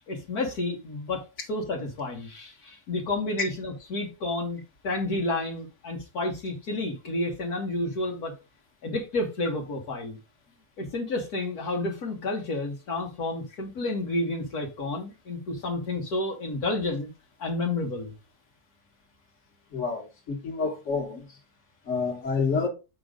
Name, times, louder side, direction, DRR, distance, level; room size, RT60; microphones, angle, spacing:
voice 1, 0.0-8.3 8.8-10.2 10.8-17.1 17.4-18.1, left 2 dB, 70° left, 1.9 m, -30 dB
voice 2, 19.7-21.4 21.9-22.7, left 4 dB, 50° left, 2.0 m, -28 dB
7.7 x 5.0 x 3.8 m
omnidirectional pair, 1.7 m